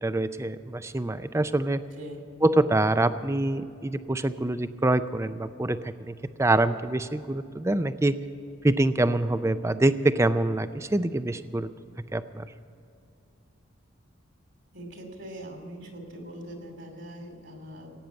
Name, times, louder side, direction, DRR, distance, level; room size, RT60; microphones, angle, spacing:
voice 1, 0.0-1.8 2.4-8.2 8.6-11.7 12.1-12.5, right 2 dB, 15° right, 12 dB, 0.4 m, -25 dB
voice 2, 14.7-17.9, equal, 60° right, 4 dB, 2.8 m, -42 dB
17.0 x 9.0 x 8.1 m, 2.6 s
head